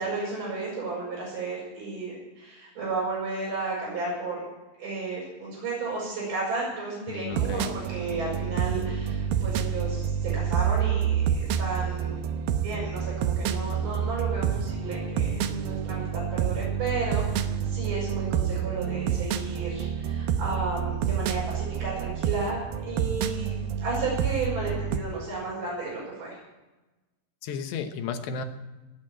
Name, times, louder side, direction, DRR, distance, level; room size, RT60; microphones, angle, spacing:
voice 1, 0.0-4.4 4.8-12.2 12.5-26.4, right 3 dB, 45° right, -7 dB, 6.8 m, -33 dB
voice 2, 7.1-7.7 27.4-28.5, left 6 dB, 75° left, 6 dB, 3.2 m, -33 dB
sound 1, 7.3-25.0, right 8 dB, 80° right, 2.2 m, -28 dB
17.5 x 8.7 x 8.9 m, 1.1 s
omnidirectional pair, 5.2 m